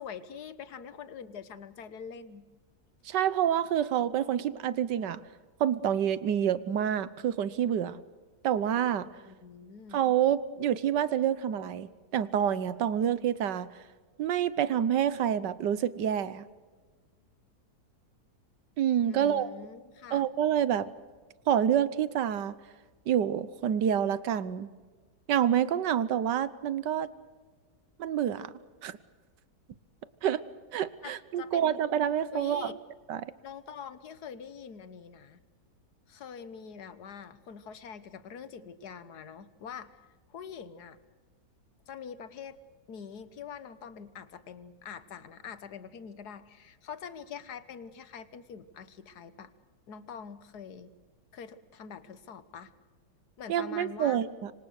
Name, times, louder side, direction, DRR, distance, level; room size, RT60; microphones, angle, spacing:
voice 1, 0.0-2.4 9.2-10.0 19.1-20.3 31.0-31.8 32.3-32.8 33.4-35.4 36.1-40.0 40.3-41.0 41.9-42.6 42.9-49.5 49.9-50.9 51.3-52.7 53.4-54.2, left 7 dB, 65° left, 13 dB, 1.7 m, -44 dB
voice 2, 3.0-5.2 5.6-8.0 8.4-9.1 9.9-13.7 14.2-16.5 18.8-19.5 20.1-20.9 21.5-22.5 23.1-24.7 25.3-27.1 28.0-28.5 28.8-29.0 30.2-30.4 30.7-32.7 33.1-33.3 53.5-54.5, right 9 dB, 80° right, 16 dB, 1.6 m, -27 dB
26.0 x 25.5 x 6.5 m, 1.4 s
omnidirectional pair, 1.9 m